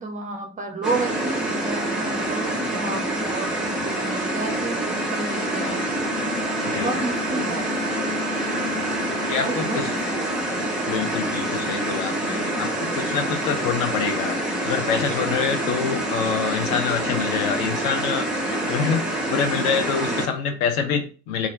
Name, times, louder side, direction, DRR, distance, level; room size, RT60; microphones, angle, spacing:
voice 1, 0.0-5.8 6.7-7.6 9.3-10.3 10.8-10.9 20.1-20.2, right 3 dB, 20° right, 3 dB, 0.5 m, -31 dB
sound 1, 0.8-20.3, right 1 dB, ahead, 0.9 m, -26 dB
Bowed string instrument, 5.3-10.8, left 1 dB, 70° left, 1.0 m, -35 dB
voice 2, 9.2-9.9 10.9-21.5, left 6 dB, 50° left, 6 dB, 0.6 m, -26 dB
2.4 x 2.1 x 3.5 m, 0.36 s
figure-of-eight pair, 55°, 40 cm